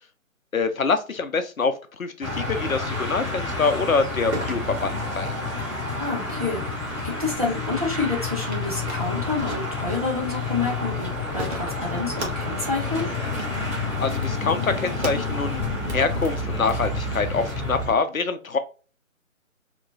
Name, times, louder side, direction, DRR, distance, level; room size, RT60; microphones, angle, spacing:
voice 1, 0.5-1.7 2.0-5.3 14.0-15.6 15.9-18.6, left 4 dB, 80° left, 9 dB, 0.6 m, -25 dB
sound 1, 2.2-17.9, left 3 dB, 10° right, 0.9 m, -29 dB
sound 2, 4.3-17.5, right 1 dB, 55° right, 1.0 m, -40 dB
voice 2, 6.0-13.1, left 3 dB, 30° right, -2 dB, 0.5 m, -29 dB
2.9 x 2.3 x 2.7 m, 0.34 s
figure-of-eight pair, 150°, 41 cm